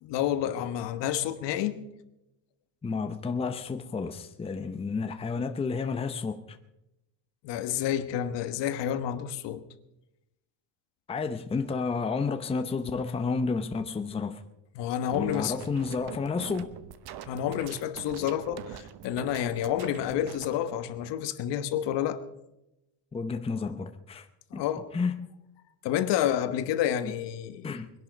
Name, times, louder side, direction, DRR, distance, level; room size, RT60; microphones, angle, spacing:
voice 1, 0.0-1.9 7.4-9.6 14.7-15.5 17.3-22.2 24.5-24.9 25.8-27.7, left 10 dB, 65° left, 1.4 m, -29 dB
voice 2, 2.8-6.6 11.1-14.4 15.1-16.7 23.1-24.3 24.5-24.6 24.9-25.3 27.0-27.1 27.6-27.9, left 4 dB, 15° left, 0.7 m, -31 dB
sound 1, 15.1-20.5, right 10 dB, 55° right, 1.0 m, -44 dB
21.5 x 11.0 x 5.2 m
cardioid pair, 140°, 45 cm